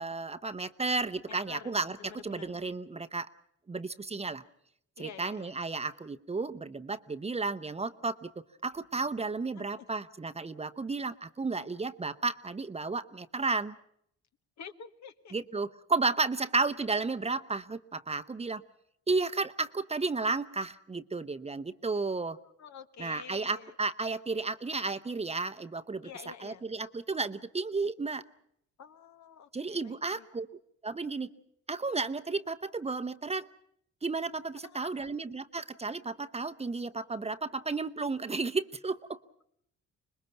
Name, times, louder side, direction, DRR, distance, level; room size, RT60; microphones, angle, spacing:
voice 1, 0.0-2.0 2.2-3.3 3.7-4.4 5.0-13.8 15.3-18.6 19.1-22.4 23.0-26.1 26.4-28.2 29.5-30.5 30.8-31.3 31.7-33.5 34.0-39.2, right 3 dB, 20° right, 10 dB, 0.8 m, -33 dB
voice 2, 1.3-2.6 5.0-5.6 9.5-9.9 14.6-15.3 22.6-23.7 26.0-26.6 28.8-30.3 34.6-35.1, left 7 dB, 65° left, 9 dB, 1.6 m, -49 dB
25.5 x 21.0 x 5.8 m, 0.72 s
cardioid pair, 90°, 30 cm